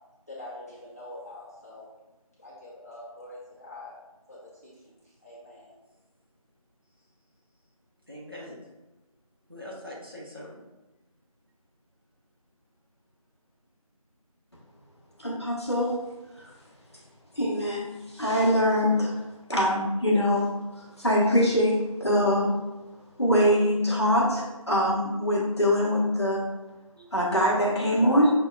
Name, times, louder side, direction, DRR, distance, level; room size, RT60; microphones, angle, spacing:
voice 1, 0.3-1.9 2.4-4.0 4.3-5.8, left 1 dB, 25° left, -8 dB, 0.9 m, -45 dB
voice 2, 8.1-8.6 9.5-10.6 26.9-27.3 27.9-28.2, left 1 dB, 40° right, -4 dB, 0.6 m, -43 dB
voice 3, 15.2-15.9 16.3-16.5 17.3-19.2 19.5-22.6 23.2-26.4 27.1-28.3, equal, 45° left, -5 dB, 1.0 m, -23 dB
6.3 x 2.2 x 2.3 m, 1.1 s
figure-of-eight pair, 175°, 19 cm